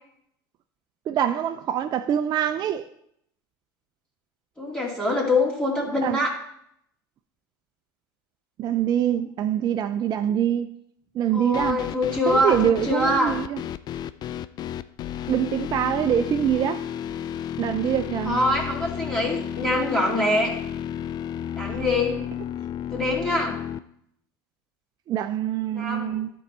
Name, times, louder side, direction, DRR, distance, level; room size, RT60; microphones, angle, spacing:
voice 1, 1.1-2.8 6.0-6.2 8.6-10.7 11.2-11.8 12.3-13.6 15.3-16.8 17.6-18.4 25.1-26.3, right 10 dB, 40° right, 0.4 m, -24 dB
voice 2, 4.6-6.3 11.3-13.4 18.2-20.5 21.5-22.2 22.9-23.6 25.7-26.2, left 1 dB, 10° left, 2.3 m, -24 dB
sound 1, 11.5-23.8, left 10 dB, 40° left, 0.3 m, -32 dB
11.5 x 4.6 x 4.2 m
hypercardioid pair, 85°, 11 cm